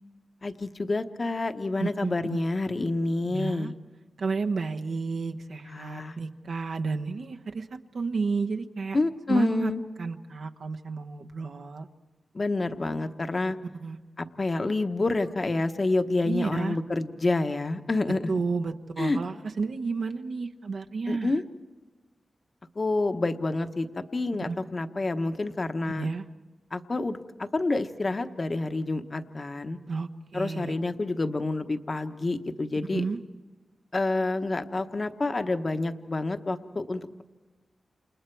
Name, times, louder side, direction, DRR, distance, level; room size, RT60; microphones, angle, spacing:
voice 1, 0.4-3.7 5.7-6.2 8.9-9.8 12.3-13.6 14.4-18.2 19.0-19.2 21.1-21.4 22.8-23.9 24.1-26.1 26.7-29.8 30.3-33.0 33.9-37.2, left 2 dB, 30° left, 8 dB, 1.0 m, -28 dB
voice 2, 1.8-2.4 3.3-3.7 4.2-9.0 9.3-9.7 10.0-11.9 13.8-14.0 16.3-16.8 18.3-21.4 24.5-24.6 25.9-26.2 29.9-30.7 32.9-33.2, right 4 dB, 65° right, 4 dB, 1.1 m, -31 dB
29.0 x 28.5 x 4.6 m, 1.2 s
wide cardioid pair, 170°, 0 cm